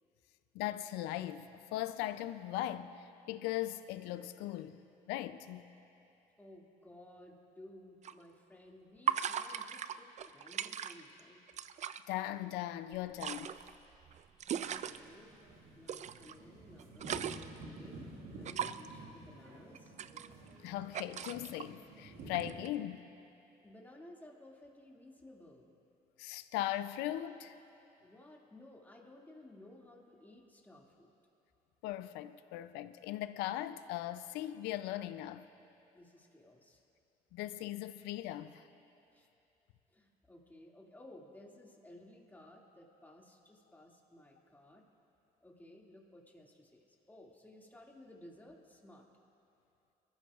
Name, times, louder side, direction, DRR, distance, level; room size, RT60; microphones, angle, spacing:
voice 1, 0.5-4.8 5.1-5.7 12.1-13.5 20.6-23.0 26.2-27.6 31.8-35.4 37.3-38.6, left 14 dB, 85° left, 13 dB, 0.5 m, -39 dB
voice 2, 6.4-11.4 14.5-15.4 15.7-18.0 18.4-20.0 23.6-25.7 28.0-31.1 35.9-36.8 39.1-39.3 39.9-44.9 45.4-49.1, left 1 dB, 10° left, -2 dB, 2.2 m, -57 dB
sound 1, 8.0-8.1 9.1-11.2 11.5-12.0 12.9-15.0 15.9-16.3 16.7-17.6 18.5-18.9 19.7-20.7 20.9-21.7 22.4-22.7, right 9 dB, 45° right, 0.4 m, -38 dB
sound 2, 14.6-22.5, right 2 dB, 80° right, 1.9 m, -51 dB
22.5 x 14.5 x 2.4 m, 2.8 s
supercardioid pair, 75°, 17 cm